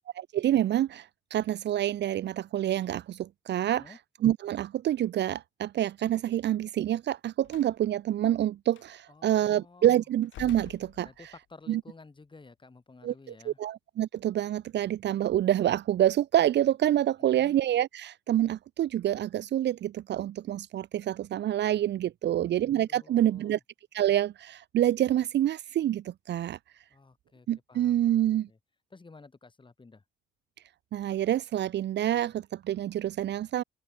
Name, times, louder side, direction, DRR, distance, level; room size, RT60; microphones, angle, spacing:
voice 1, 0.3-3.9 4.2-11.1 11.7-11.8 13.0-23.6 23.9-26.6 27.5-28.5 30.9-33.6, right 12 dB, 60° right, 0.6 m, -27 dB
voice 2, 3.6-4.0 9.1-10.0 11.0-13.6 17.2-17.5 22.2-23.6 26.9-28.6 28.9-30.0, left 3 dB, 25° left, 5.8 m, -53 dB
Slam, 7.4-7.8 8.7-8.9 10.2-11.5, left 13 dB, 75° left, 1.1 m, -48 dB
open air
cardioid pair, 90°, 20 cm